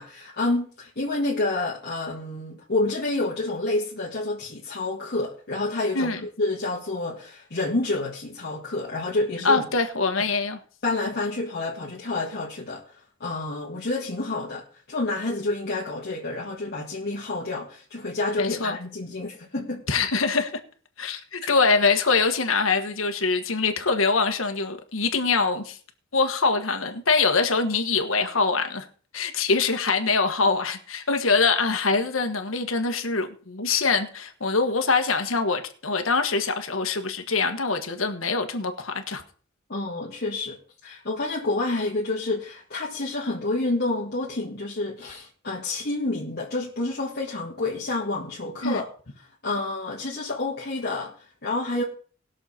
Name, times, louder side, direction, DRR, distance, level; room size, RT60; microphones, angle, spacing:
voice 1, 0.0-9.7 10.8-19.8 39.7-48.9 49.2-51.8, left 2 dB, 50° left, 2.0 m, -29 dB
voice 2, 9.4-10.6 18.4-18.8 19.9-20.5 21.0-25.8 26.1-28.8 29.1-39.2 48.6-48.8, left 4 dB, 75° left, 1.4 m, -24 dB
19.5 x 6.7 x 4.3 m
head